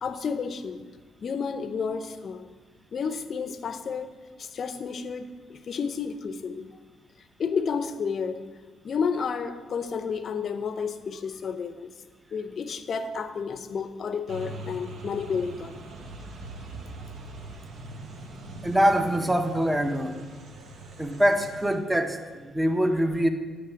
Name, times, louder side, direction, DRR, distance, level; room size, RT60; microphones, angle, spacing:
voice 1, 0.0-0.8 1.2-2.5 2.9-4.1 4.4-6.7 7.4-8.4 8.8-11.9 12.3-15.8, left 6 dB, 50° left, 10 dB, 0.6 m, -31 dB
sound 1, 14.3-21.8, right 2 dB, 65° right, 0.9 m, -41 dB
voice 2, 18.6-20.2 21.0-23.3, equal, 10° right, 6 dB, 0.7 m, -24 dB
9.7 x 3.2 x 6.9 m, 1.4 s
cardioid pair, 90°, 0 cm